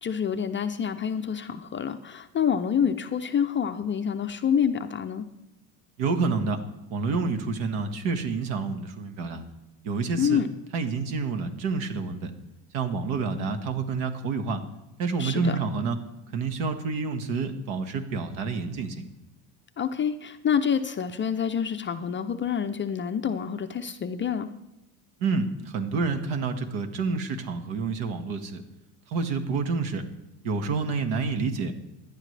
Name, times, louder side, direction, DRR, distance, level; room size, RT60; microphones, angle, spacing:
voice 1, 0.0-5.3 10.2-10.5 15.2-15.6 19.8-24.5, left 7 dB, 25° left, 7 dB, 0.4 m, -27 dB
voice 2, 6.0-6.6 6.9-9.4 9.8-10.4 10.7-12.3 12.7-14.6 15.0-16.0 16.3-19.0 25.2-28.6 29.1-30.0 30.4-31.7, right 4 dB, 70° right, 7 dB, 1.7 m, -28 dB
17.5 x 11.5 x 3.3 m, 0.96 s
cardioid pair, 140°, 49 cm